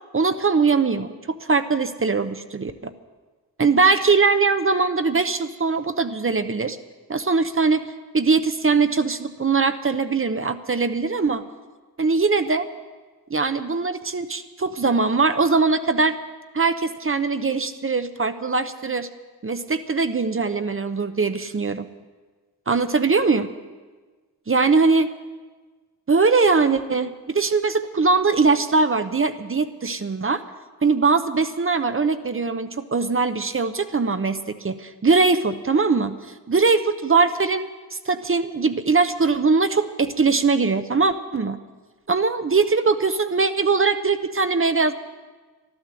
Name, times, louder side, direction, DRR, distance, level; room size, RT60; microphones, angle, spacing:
voice 1, 0.1-2.7 3.6-6.8 7.1-7.8 8.1-11.4 12.0-12.7 13.3-16.2 16.5-19.1 19.4-21.9 22.7-23.5 24.5-25.1 26.1-30.4 30.8-36.1 36.5-37.7 38.1-41.6 42.1-44.9, right 4 dB, 35° right, 10 dB, 0.8 m, -21 dB
12.5 x 12.0 x 7.6 m, 1.3 s
cardioid pair, 60°, 40 cm